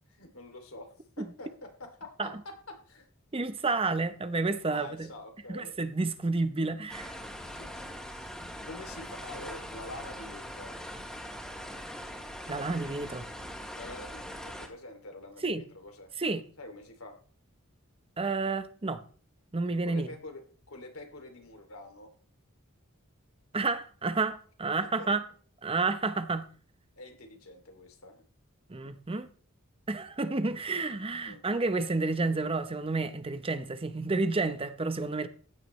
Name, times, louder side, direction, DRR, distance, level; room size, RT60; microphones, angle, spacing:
voice 1, 0.1-3.1 4.7-5.7 7.5-8.3 8.6-10.7 13.7-17.2 19.8-20.4 20.7-22.1 25.0-25.1 27.0-28.2 31.2-31.5, left 2 dB, 85° left, 2.7 m, -46 dB
voice 2, 3.3-5.1 5.5-7.1 12.5-13.2 15.4-15.6 16.2-16.4 18.2-19.0 19.5-20.1 23.5-25.2 25.6-26.5 28.7-29.3 29.9-35.3, right 3 dB, 25° right, 0.8 m, -30 dB
sound 1, 6.9-14.7, equal, 5° left, 2.6 m, -42 dB
15.0 x 9.9 x 3.2 m
head